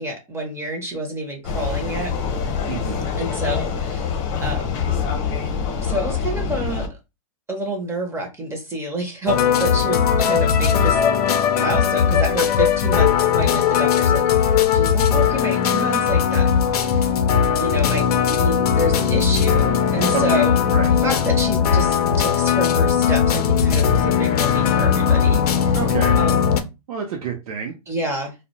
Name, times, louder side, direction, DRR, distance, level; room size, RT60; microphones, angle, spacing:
voice 1, 0.0-2.1 3.2-4.8 5.8-6.9 7.5-11.0 11.6-16.5 16.8-17.1 17.6-20.6 21.0-25.8 26.2-26.5 27.9-28.3, right 1 dB, 15° right, 2 dB, 0.6 m, -28 dB
Vehicle, 1.4-6.9, left 6 dB, 45° left, 0.7 m, -25 dB
voice 2, 2.7-3.1 20.1-20.9 25.7-26.2 26.9-27.7, right 6 dB, 70° right, 0 dB, 0.6 m, -29 dB
sound 1, 9.3-26.6, left 7 dB, 85° left, 0.5 m, -18 dB
2.2 x 2.1 x 2.8 m, 0.25 s
hypercardioid pair, 130°, 19 cm